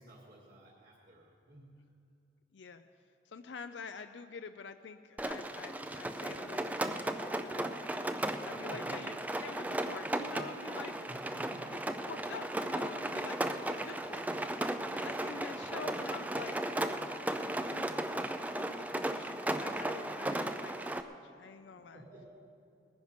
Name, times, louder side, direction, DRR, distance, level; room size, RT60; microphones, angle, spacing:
voice 1, 0.0-1.8 8.7-9.0 11.1-11.9 21.7-22.3, equal, 45° right, -5 dB, 2.2 m, -53 dB
voice 2, 2.5-2.9 3.3-7.9 8.5-11.4 11.7-11.8 12.0-14.4 14.9-16.6 17.3-22.0, left 5 dB, 75° left, 8 dB, 0.5 m, -47 dB
Rain, 5.2-21.0, right 1 dB, 10° right, 0.4 m, -36 dB
20.0 x 10.5 x 5.1 m, 2.5 s
head